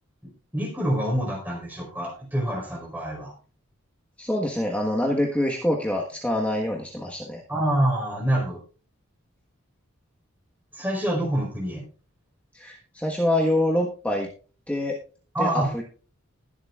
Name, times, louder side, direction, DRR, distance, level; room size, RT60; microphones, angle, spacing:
voice 1, 0.5-3.3 7.5-8.6 10.7-11.8 15.3-15.8, right 1 dB, 10° right, 0 dB, 4.7 m, -26 dB
voice 2, 4.2-7.4 12.5-14.3 14.7-15.0 15.4-15.8, left 1 dB, 5° left, -1 dB, 1.4 m, -25 dB
20.5 x 7.9 x 2.4 m, 0.37 s
head